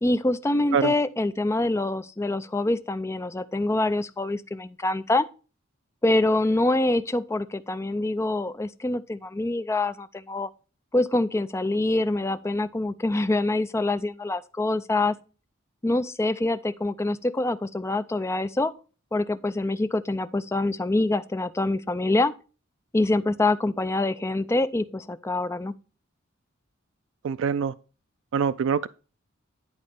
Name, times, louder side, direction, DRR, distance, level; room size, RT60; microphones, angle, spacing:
voice 1, 0.0-5.3 6.0-10.5 10.9-15.2 15.8-18.7 19.1-22.3 22.9-25.7, left 2 dB, 15° left, 0.4 m, -25 dB
voice 2, 27.2-27.7 28.3-28.9, right 6 dB, 65° right, 0.3 m, -24 dB
10.5 x 4.1 x 5.2 m
head